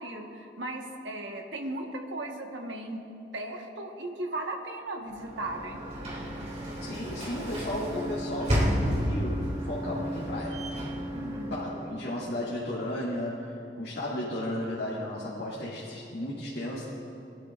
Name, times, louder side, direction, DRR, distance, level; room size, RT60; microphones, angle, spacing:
voice 1, 0.0-3.0 3.3-5.8 11.1-11.5, right 1 dB, 80° right, 2 dB, 1.3 m, -36 dB
Sliding door / Slam, 5.1-12.1, equal, 40° right, 2.5 m, -32 dB
voice 2, 6.8-10.6 11.5-16.8, left 1 dB, 65° left, -8 dB, 2.1 m, -34 dB
22.5 x 12.0 x 2.5 m, 2.7 s
head